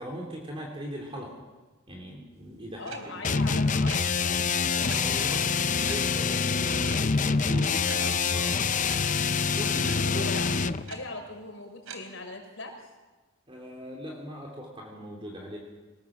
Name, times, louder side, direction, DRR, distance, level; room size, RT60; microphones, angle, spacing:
voice 1, 0.0-1.4 1.9-3.2 5.0-5.5 5.8-8.0 8.3-8.5 9.5-10.8 13.5-15.6, equal, 25° right, -1 dB, 3.3 m, -40 dB
voice 2, 2.8-5.5 7.3-8.4 9.9-10.5 10.9-12.8, left 2 dB, 65° left, 2 dB, 6.4 m, -40 dB
sound 1, 2.9-3.0 3.9-4.0 4.9-5.0 5.9-6.0 6.8-7.0 7.9-8.0 8.8-9.0 9.9-10.0 10.9-11.0 11.9-12.0, right 6 dB, 90° right, 3.8 m, -40 dB
sound 2, 3.2-10.8, left 5 dB, 35° left, 0.7 m, -26 dB
26.5 x 19.0 x 7.4 m, 1.2 s
head